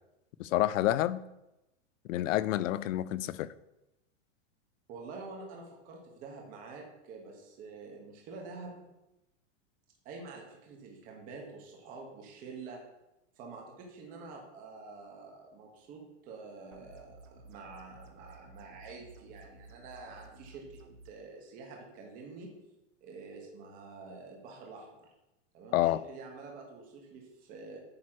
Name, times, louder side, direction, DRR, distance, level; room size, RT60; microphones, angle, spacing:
voice 1, 0.4-1.2 2.1-3.5 25.7-26.0, left 14 dB, 90° left, 17 dB, 0.5 m, -28 dB
voice 2, 4.9-8.9 10.0-12.8 13.4-22.5 23.0-25.1 25.5-27.8, right 4 dB, 20° right, 1 dB, 1.1 m, -47 dB
sound 1, 16.7-21.1, right 2 dB, 75° right, 1.0 m, -54 dB
8.7 x 3.1 x 6.0 m, 0.93 s
supercardioid pair, 175°, 38 cm